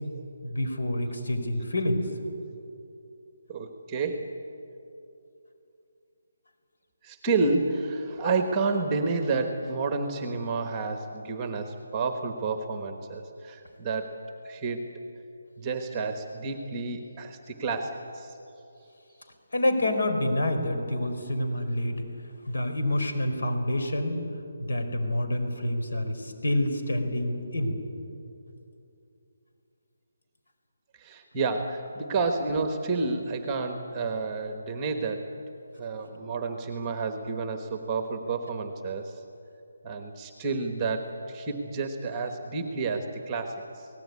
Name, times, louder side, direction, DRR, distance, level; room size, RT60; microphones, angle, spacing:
voice 1, 0.4-2.0 19.5-22.0 22.5-24.2 24.6-27.8, left 1 dB, 65° left, 6 dB, 4.7 m, -27 dB
voice 2, 3.5-4.3 7.0-14.2 14.4-14.8 15.6-18.4 30.9-35.3 35.8-39.2 39.8-43.9, right 4 dB, 10° right, 6 dB, 1.2 m, -30 dB
28.5 x 18.5 x 9.6 m, 2.8 s
hypercardioid pair, 180°, 0 cm